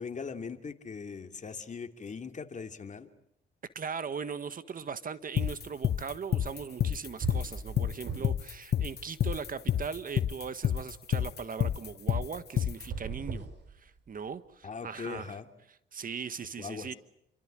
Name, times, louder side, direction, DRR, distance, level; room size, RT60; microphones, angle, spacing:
voice 1, 0.0-3.1 14.6-15.5 16.6-16.9, left 5 dB, 40° left, 7 dB, 2.7 m, -40 dB
voice 2, 3.7-13.5 13.7-15.4 15.9-16.9, right 6 dB, 45° right, 13 dB, 1.5 m, -39 dB
sound 1, 5.4-12.8, left 10 dB, 55° left, 1.2 m, -28 dB
sound 2, 6.8-6.9 7.2-8.5 8.8-9.9 12.7-14.3, right 5 dB, 60° right, 7.1 m, -40 dB
30.0 x 24.0 x 7.7 m, 0.75 s
cardioid pair, 90°, 20 cm